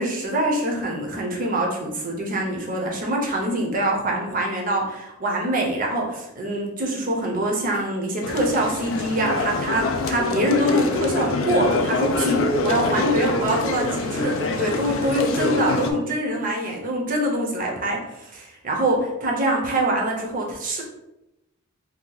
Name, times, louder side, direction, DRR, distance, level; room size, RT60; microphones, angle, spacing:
voice 1, 0.0-20.8, right 1 dB, 40° right, -1 dB, 0.6 m, -24 dB
sound 1, 8.2-15.9, left 3 dB, 60° left, 0.4 m, -25 dB
2.7 x 2.3 x 3.8 m, 0.93 s
head